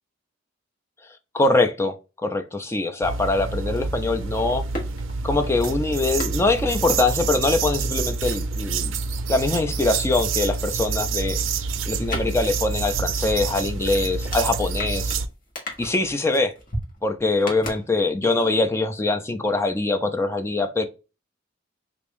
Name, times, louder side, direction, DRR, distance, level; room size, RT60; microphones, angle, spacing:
voice 1, 1.3-1.9 2.2-4.7 5.2-8.9 9.3-11.4 11.9-15.1 15.8-16.5 17.0-20.9, left 2 dB, 15° left, 0.3 m, -23 dB
sound 1, 3.0-15.3, right 4 dB, 85° right, 0.4 m, -27 dB
sound 2, 3.6-10.1 10.4-18.4 18.7-18.8, left 1 dB, 45° left, 1.3 m, -39 dB
3.4 x 2.5 x 3.5 m
head